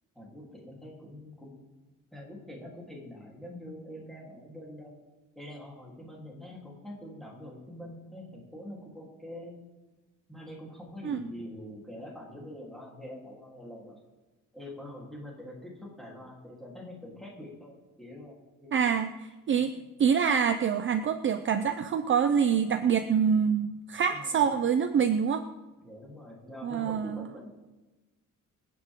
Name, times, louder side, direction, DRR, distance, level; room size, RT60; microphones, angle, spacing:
voice 1, 0.1-1.5 2.1-5.0 5.3-9.6 10.3-14.0 14.5-18.3 18.6-18.9 19.5-19.7 24.1-24.5 25.8-27.7, left 1 dB, ahead, -4 dB, 3.4 m, -45 dB
voice 2, 18.7-19.1 19.5-25.4 26.6-27.3, right 7 dB, 35° right, 8 dB, 0.6 m, -26 dB
25.5 x 9.3 x 3.7 m, 1.2 s
cardioid pair, 175°, 33 cm